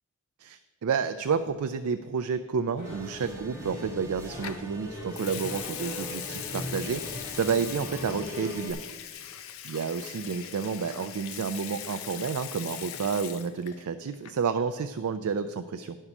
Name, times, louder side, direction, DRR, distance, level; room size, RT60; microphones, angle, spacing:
voice 1, 0.4-8.8 9.6-16.0, right 6 dB, 75° right, 9 dB, 0.4 m, -30 dB
sound 1, 2.8-8.5, equal, 35° left, 3.1 m, -40 dB
sound 2, 2.8-8.7, equal, 15° right, 1.5 m, -46 dB
Water tap faucet / Sink (filling or washing) / Liquid, 4.4-4.7 5.1-13.9 14.1-14.5, left 10 dB, 65° left, 0.6 m, -40 dB
9.9 x 5.5 x 5.9 m, 1.4 s
head